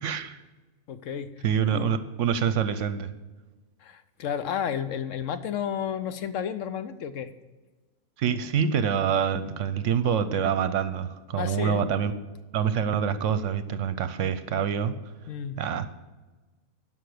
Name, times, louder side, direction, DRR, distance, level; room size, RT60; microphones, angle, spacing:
voice 1, 0.0-0.4 1.4-3.1 8.2-12.1 12.5-14.9 15.6-15.9, right 7 dB, 65° right, 12 dB, 0.9 m, -26 dB
voice 2, 0.9-1.3 1.7-2.0 3.8-7.3 11.4-11.8 15.3-15.6, left 8 dB, 70° left, 11 dB, 0.9 m, -32 dB
11.5 x 5.9 x 7.7 m, 1.2 s
omnidirectional pair, 1.5 m